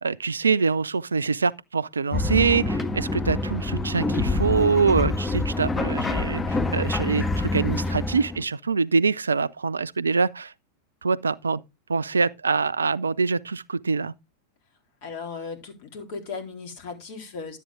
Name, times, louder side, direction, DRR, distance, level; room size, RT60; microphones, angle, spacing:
voice 1, 0.0-10.5 11.0-11.6 11.9-14.1, right 5 dB, 75° right, 0.5 m, -24 dB
sound 1, 2.1-8.4, left 2 dB, 15° left, 1.4 m, -26 dB
voice 2, 15.0-17.6, left 4 dB, 50° left, 3.9 m, -36 dB
11.5 x 8.3 x 3.7 m
figure-of-eight pair, 90°, 0 cm